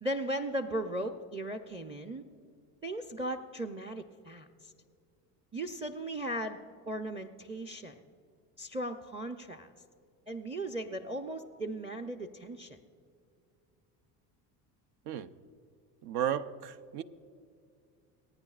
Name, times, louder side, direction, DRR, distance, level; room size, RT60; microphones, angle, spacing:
voice 1, 0.0-2.2 2.8-4.7 5.5-6.6 6.9-8.0 8.6-9.7 10.3-12.8, right 1 dB, 15° right, 0.6 m, -37 dB
voice 2, 16.0-17.0, right 10 dB, 65° right, 0.7 m, -34 dB
27.5 x 9.3 x 2.4 m
supercardioid pair, 85°, 44 cm